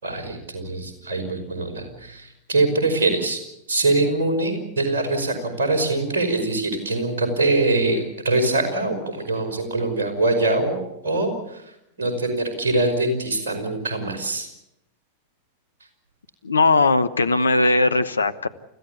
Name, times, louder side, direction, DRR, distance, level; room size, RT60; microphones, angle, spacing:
voice 1, 0.0-3.4 3.7-11.6 12.0-14.5, right 2 dB, 65° right, 3 dB, 5.5 m, -23 dB
voice 2, 16.4-18.5, left 3 dB, 75° left, 11 dB, 1.0 m, -19 dB
29.5 x 15.0 x 8.3 m, 0.85 s
figure-of-eight pair, 90°, 0 cm